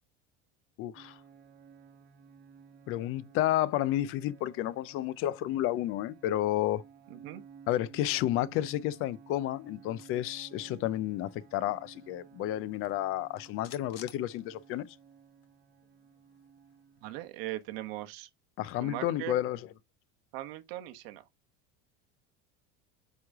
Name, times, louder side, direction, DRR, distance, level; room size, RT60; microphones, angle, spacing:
voice 1, 0.8-1.2 2.9-6.8 7.7-14.9 18.6-19.7, left 13 dB, 45° left, 0.6 m, -31 dB
sound 1, 1.0-17.2, right 6 dB, 35° right, 0.9 m, -55 dB
voice 2, 7.1-7.4 17.0-18.3 18.8-19.4 20.3-21.2, right 15 dB, 80° right, 1.3 m, -39 dB
sound 2, 12.7-15.1 15.4-15.5 15.8-17.7, left 12 dB, 80° left, 1.4 m, -55 dB
9.4 x 3.2 x 3.6 m
cardioid pair, 150°, 29 cm